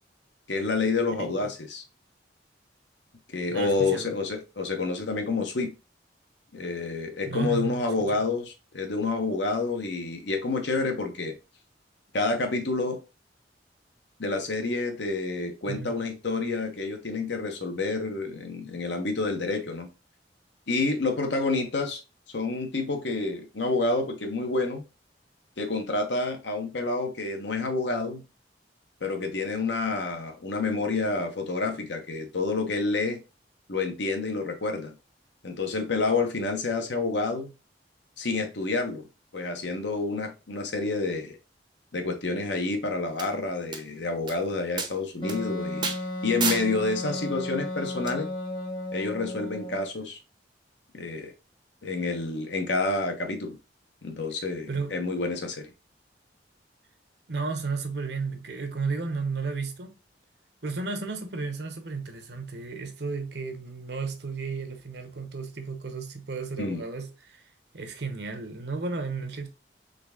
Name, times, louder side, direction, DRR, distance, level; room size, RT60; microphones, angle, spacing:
voice 1, 0.5-1.8 3.3-5.7 6.5-11.3 12.1-13.0 14.2-19.9 20.7-22.0 22.3-24.8 25.6-28.2 29.0-33.2 33.7-34.9 35.4-37.5 38.2-39.0 39.3-41.4 41.9-45.9 46.2-48.3 48.9-50.2 50.9-51.3 51.8-53.6 54.0-55.7 66.6-66.8, left 3 dB, 80° left, 1.1 m, -28 dB
voice 2, 3.5-4.2 7.2-8.2 15.7-15.9 54.7-55.0 57.3-59.9 60.6-67.4 67.7-69.5, right 4 dB, 65° right, 0.9 m, -33 dB
sound 1, 43.2-43.3 43.7-43.8 44.3-44.4 44.8-44.9 45.3-45.4 45.8-46.0 46.4-46.7 48.1-48.2, right 5 dB, 25° right, 0.7 m, -29 dB
Wind instrument woodwind instrument, 45.2-49.9, left 1 dB, 25° left, 0.8 m, -34 dB
3.9 x 3.4 x 3.6 m
head